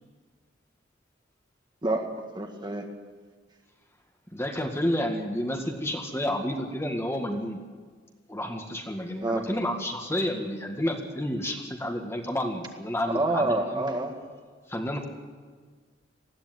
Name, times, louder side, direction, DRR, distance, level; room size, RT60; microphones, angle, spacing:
voice 1, 1.8-2.9 9.2-9.5 13.1-14.4, right 2 dB, 25° right, 3 dB, 2.0 m, -28 dB
voice 2, 4.3-7.6 8.3-13.8 14.7-15.0, left 1 dB, 15° left, 3 dB, 1.9 m, -30 dB
20.0 x 15.0 x 9.4 m, 1.5 s
head